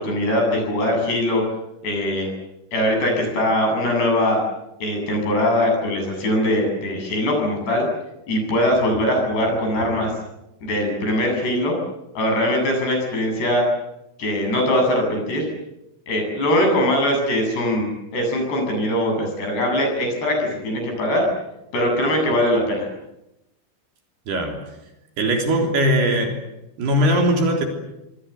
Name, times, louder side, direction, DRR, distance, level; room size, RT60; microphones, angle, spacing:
voice 1, 0.0-1.4 1.8-2.3 2.7-4.4 4.8-7.9 8.3-10.1 10.6-11.8 12.1-13.6 14.2-15.5 16.1-21.3 21.7-22.9, left 1 dB, 60° left, 2 dB, 10.0 m, -21 dB
voice 2, 24.3-24.7 25.2-26.4 26.8-27.7, equal, 60° right, 3 dB, 5.4 m, -20 dB
27.5 x 22.0 x 8.2 m, 0.90 s
omnidirectional pair, 5.4 m